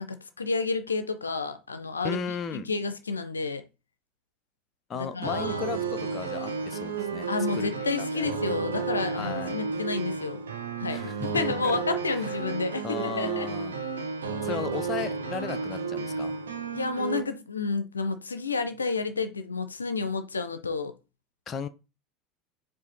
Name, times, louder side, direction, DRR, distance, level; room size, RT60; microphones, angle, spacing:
voice 1, 0.0-3.6 4.9-5.7 7.3-10.4 10.8-13.5 16.7-20.9, left 4 dB, 85° left, 0.5 m, -30 dB
voice 2, 2.0-2.7 4.9-7.3 7.6-7.7 7.9-8.3 9.2-9.6 10.9-11.3 11.6-11.8 12.2-12.5 12.8-13.8 14.4-16.4 21.5-21.7, left 6 dB, 35° left, 0.5 m, -35 dB
sound 1, 5.2-17.2, right 5 dB, 80° right, 0.7 m, -32 dB
4.9 x 2.5 x 4.0 m
figure-of-eight pair, 75°, 0 cm